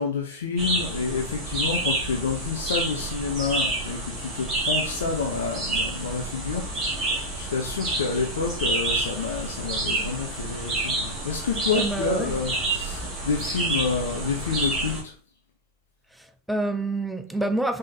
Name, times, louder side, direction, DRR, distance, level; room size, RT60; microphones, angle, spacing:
voice 1, 0.0-7.0 7.3-15.1, left 5 dB, 65° left, 0.8 m, -29 dB
sound 1, 0.6-15.0, right 2 dB, 20° right, 2.1 m, -29 dB
voice 2, 11.8-12.4 16.2-17.8, right 2 dB, ahead, 0.4 m, -27 dB
5.2 x 3.6 x 2.7 m
figure-of-eight pair, 90°, 0 cm